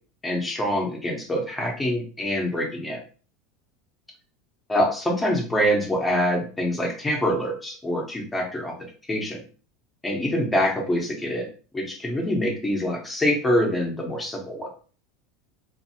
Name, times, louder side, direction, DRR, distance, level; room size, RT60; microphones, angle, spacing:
voice 1, 0.2-3.0 4.7-8.7 9.1-9.4 10.0-11.5 11.7-14.8, equal, 10° left, 1 dB, 0.8 m, -25 dB
2.6 x 2.5 x 2.8 m, 0.39 s
supercardioid pair, 125°, 0 cm